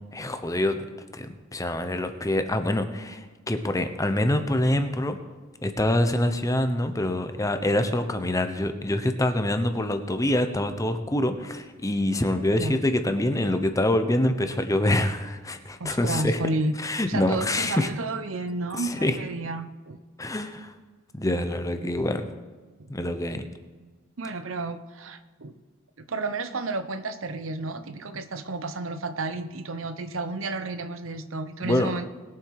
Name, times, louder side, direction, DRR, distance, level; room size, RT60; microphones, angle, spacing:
voice 1, 0.1-0.8 1.1-5.2 5.6-16.4 16.8-17.9 18.8-19.2 20.2-20.7 21.1-22.2 22.9-23.5 31.6-31.9, left 1 dB, 15° left, 8 dB, 0.9 m, -25 dB
voice 2, 15.8-16.8 17.1-20.0 24.2-25.5 26.0-32.1, right 2 dB, 80° right, 10 dB, 0.9 m, -31 dB
20.5 x 7.6 x 4.8 m, 1.4 s
head